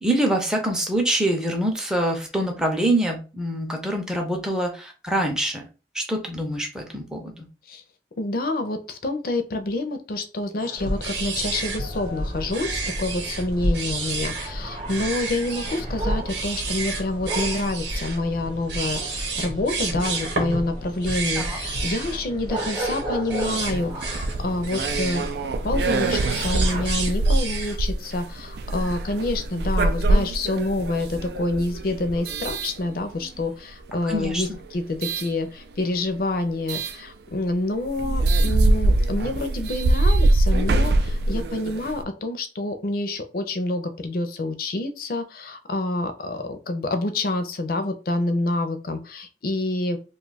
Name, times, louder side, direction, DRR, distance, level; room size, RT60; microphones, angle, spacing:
voice 1, 0.0-5.7 5.9-7.5 21.3-21.6 34.0-34.4, right 1 dB, 5° right, 1 dB, 0.5 m, -25 dB
voice 2, 8.2-25.2 25.6-50.0, left 2 dB, 55° left, 7 dB, 0.5 m, -27 dB
sound 1, 10.6-26.8, right 1 dB, 30° right, 0.8 m, -37 dB
sound 2, 10.8-27.8, right 2 dB, 85° right, 0.9 m, -30 dB
sound 3, 23.4-33.4 34.1-35.3 36.7-37.0 37.5-37.6 37.9-42.0, right 2 dB, 65° right, 0.3 m, -23 dB
2.6 x 2.3 x 4.0 m, 0.33 s
head